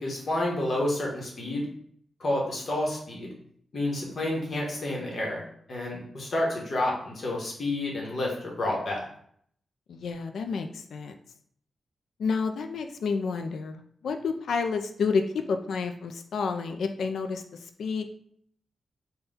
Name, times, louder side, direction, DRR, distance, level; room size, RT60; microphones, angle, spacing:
voice 1, 0.0-1.7 2.2-3.3 3.7-5.4 5.7-9.1, left 1 dB, 40° left, -2 dB, 1.0 m, -29 dB
voice 2, 9.9-11.1 12.2-18.1, left 5 dB, 90° left, 6 dB, 0.4 m, -30 dB
4.1 x 2.2 x 3.5 m, 0.64 s
wide cardioid pair, 175°, 0 cm